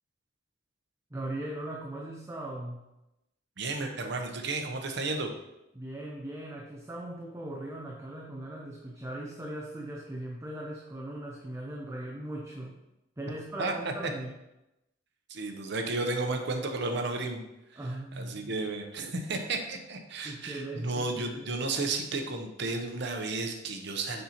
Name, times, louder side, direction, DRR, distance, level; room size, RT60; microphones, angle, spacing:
voice 1, 1.1-2.8 5.7-12.8 13.2-14.3 17.8-18.6 20.2-21.5, right 1 dB, 15° right, -1 dB, 0.6 m, -39 dB
voice 2, 3.6-5.3 13.6-13.9 15.3-17.4 17.7-17.8 18.2-24.2, right 3 dB, 65° right, 4 dB, 0.8 m, -33 dB
6.6 x 5.6 x 2.9 m, 0.93 s
head